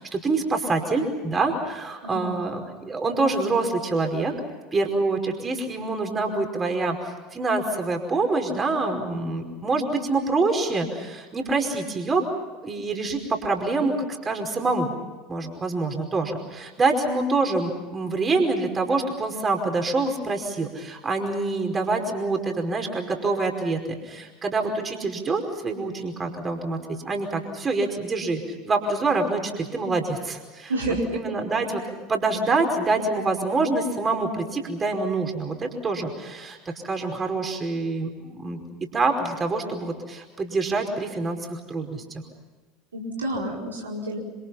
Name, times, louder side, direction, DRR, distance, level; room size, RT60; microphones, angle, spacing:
voice 1, 0.0-4.4 4.7-7.0 7.3-12.2 12.6-14.9 15.3-23.8 24.0-30.7 31.1-31.8 32.1-38.6 38.9-42.2, right 3 dB, 25° right, 4 dB, 5.1 m, -26 dB
voice 2, 30.7-31.2 42.9-44.2, right 1 dB, 80° right, -1 dB, 4.7 m, -29 dB
27.0 x 27.0 x 5.8 m, 1.3 s
figure-of-eight pair, 75°, 0 cm